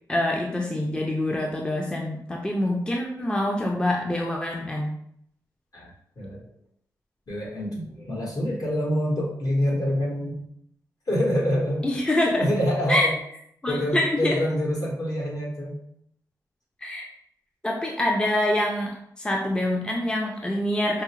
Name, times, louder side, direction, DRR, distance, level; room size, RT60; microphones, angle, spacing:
voice 1, 0.1-4.9 11.8-12.5 12.9-13.1 13.6-14.4 16.8-17.1 17.6-21.0, left 1 dB, 10° left, 0 dB, 0.4 m, -25 dB
voice 2, 7.3-10.5 11.1-11.9 12.4-13.1 13.7-15.7, equal, 55° left, -4 dB, 1.3 m, -26 dB
4.6 x 2.0 x 2.9 m, 0.70 s
cardioid pair, 75°, 7 cm